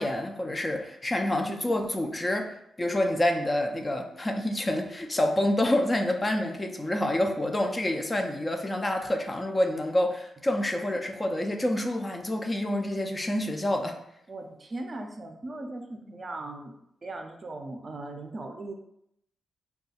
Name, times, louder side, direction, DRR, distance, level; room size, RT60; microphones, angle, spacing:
voice 1, 0.0-2.5 2.8-14.0, left 1 dB, 25° left, 4 dB, 0.4 m, -27 dB
voice 2, 14.3-18.7, right 2 dB, 40° right, 4 dB, 0.5 m, -39 dB
2.7 x 2.3 x 4.1 m, 0.77 s
cardioid pair, 85°, 0 cm